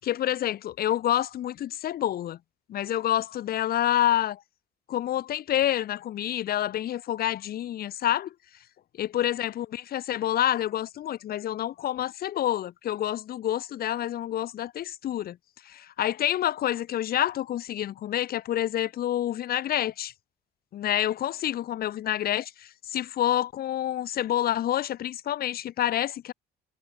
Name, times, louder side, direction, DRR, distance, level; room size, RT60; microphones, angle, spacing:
voice 1, 0.0-2.4 2.7-4.4 4.9-8.3 9.0-15.4 15.7-20.1 20.7-26.3, left 12 dB, 65° left, 7.5 m, -28 dB
cardioid pair, 110°, 17 cm